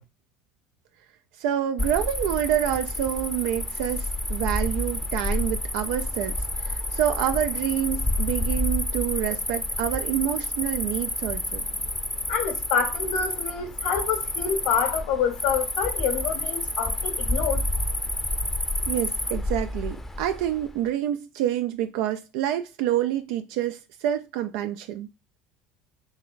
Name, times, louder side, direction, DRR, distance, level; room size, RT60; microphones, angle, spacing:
voice 1, 1.4-11.6 18.9-25.1, right 11 dB, 70° right, 0.3 m, -27 dB
Cricket, 1.8-20.7, left 1 dB, 10° left, 0.6 m, -29 dB
voice 2, 12.3-17.6, left 7 dB, 80° left, 1.4 m, -27 dB
3.9 x 3.0 x 2.5 m
hypercardioid pair, 80°, 4 cm